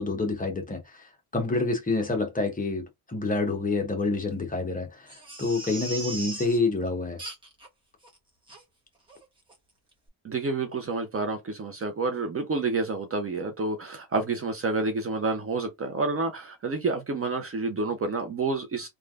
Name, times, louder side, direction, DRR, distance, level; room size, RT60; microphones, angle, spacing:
voice 1, 0.0-5.1 5.4-7.2, left 3 dB, 20° left, 0.9 m, -28 dB
Crying sobbing, 5.1-6.6 7.2-7.7 8.0-8.1 8.5-8.6 9.1-9.2 9.5-9.6, right 2 dB, 10° right, 1.1 m, -38 dB
voice 2, 10.2-18.9, right 3 dB, 35° right, 0.6 m, -29 dB
3.2 x 2.4 x 2.3 m
cardioid pair, 125°, 43 cm